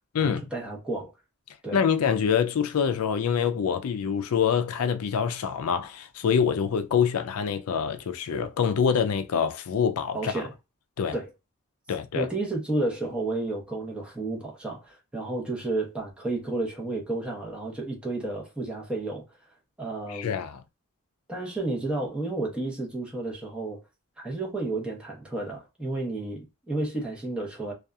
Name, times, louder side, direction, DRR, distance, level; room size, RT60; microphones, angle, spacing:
voice 1, 0.2-1.1 1.6-1.8 10.1-10.5 11.1-11.3 12.1-19.3 19.8-20.4 21.3-23.8 24.2-27.7, right 2 dB, 5° right, 0.9 m, -31 dB
voice 2, 1.7-10.3 11.0-11.1 11.9-12.3 20.1-20.6, left 7 dB, 90° left, 0.4 m, -25 dB
2.7 x 2.3 x 2.3 m
head